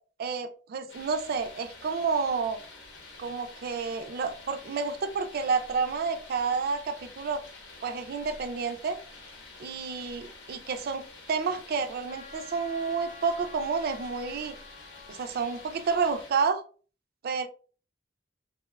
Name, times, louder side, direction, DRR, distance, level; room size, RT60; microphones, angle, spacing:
voice 1, 0.2-2.6 3.2-7.4 7.8-9.0 9.6-14.5 15.1-16.6 17.2-17.5, right 5 dB, 55° right, 8 dB, 0.3 m, -30 dB
sound 1, 0.9-16.3, left 3 dB, 80° left, 0.8 m, -49 dB
Wind instrument woodwind instrument, 12.1-15.9, left 4 dB, 40° left, 0.5 m, -50 dB
2.8 x 2.1 x 2.2 m, 0.39 s
head